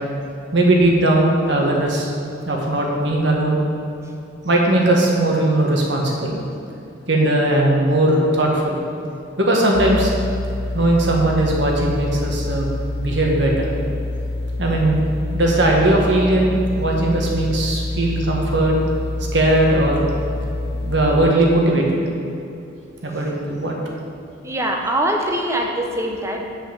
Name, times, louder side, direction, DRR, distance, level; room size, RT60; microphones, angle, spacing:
voice 1, 0.5-2.1 2.4-3.6 4.4-6.4 7.1-8.8 9.4-10.2 10.7-12.7 13.0-13.7 14.6-15.1 15.3-18.7 19.3-20.1 20.7-22.0 23.0-23.7, right 1 dB, 65° right, -1 dB, 1.6 m, -18 dB
sound 1, 9.7-21.3, left 2 dB, 50° left, 0.6 m, -26 dB
voice 2, 24.4-26.4, right 1 dB, 15° right, 1 dB, 0.8 m, -22 dB
7.7 x 5.7 x 7.2 m, 2.7 s
head